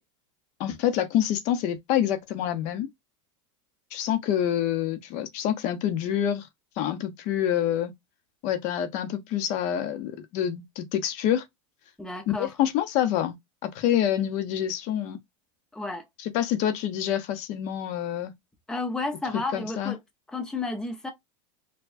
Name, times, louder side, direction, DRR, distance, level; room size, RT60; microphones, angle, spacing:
voice 1, 0.6-2.9 3.9-6.5 6.8-7.9 8.4-11.4 12.4-13.3 13.6-15.2 16.2-18.3 19.5-19.9, left 10 dB, 45° left, 0.8 m, -27 dB
voice 2, 12.0-12.5 15.7-16.0 18.7-20.0 20.3-21.1, left 3 dB, 5° left, 0.6 m, -32 dB
4.5 x 2.2 x 2.5 m
supercardioid pair, 140°, 17 cm